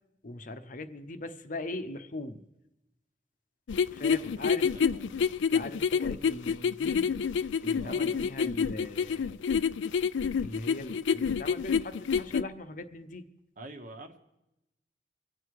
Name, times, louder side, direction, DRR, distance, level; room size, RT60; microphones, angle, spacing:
voice 1, 0.2-2.5 3.9-4.7 5.5-7.1 7.6-9.4 10.4-13.2, left 2 dB, 45° left, 9 dB, 0.8 m, -40 dB
sound 1, 3.7-12.4, left 6 dB, 85° left, 0.4 m, -27 dB
voice 2, 4.7-5.2 7.8-8.2 13.6-14.2, right 1 dB, 45° right, 7 dB, 1.3 m, -46 dB
24.5 x 8.4 x 4.8 m, 0.92 s
head